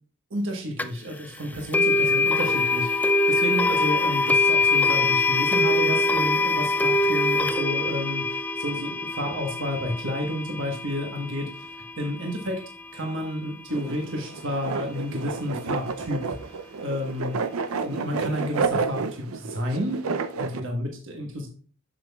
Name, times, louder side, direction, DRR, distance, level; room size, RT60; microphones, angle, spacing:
voice 1, 0.3-12.6 12.9-16.3 16.8-17.4 17.8-21.5, equal, 60° right, 1 dB, 1.3 m, -31 dB
sound 1, 0.8-0.9 1.7-12.7, left 3 dB, 10° left, 0.3 m, -23 dB
sound 2, 13.7-20.6, right 5 dB, 80° right, 0.5 m, -30 dB
7.4 x 7.3 x 2.3 m, 0.42 s
head